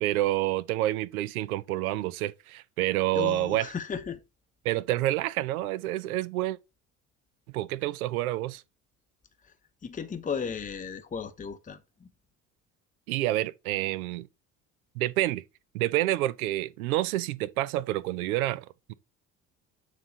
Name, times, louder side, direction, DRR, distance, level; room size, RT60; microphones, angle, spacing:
voice 1, 0.0-3.7 4.6-6.6 7.5-8.6 13.1-14.3 15.0-15.4 15.7-18.9, right 15 dB, 70° right, 0.6 m, -28 dB
voice 2, 3.2-4.2 9.8-12.1, left 6 dB, 20° left, 0.8 m, -35 dB
6.9 x 4.0 x 4.0 m
figure-of-eight pair, 60°, 45 cm